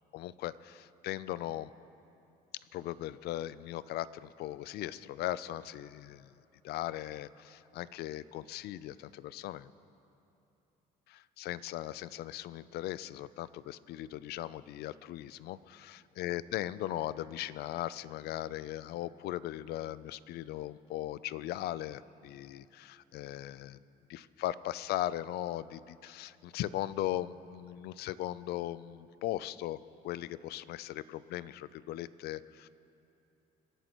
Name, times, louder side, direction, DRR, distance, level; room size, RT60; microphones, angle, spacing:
voice 1, 0.1-1.7 2.7-6.3 6.6-9.7 11.1-23.8 24.1-32.7, left 14 dB, 70° left, 17 dB, 0.4 m, -38 dB
27.0 x 11.0 x 3.0 m, 2.8 s
cardioid pair, 110°, 17 cm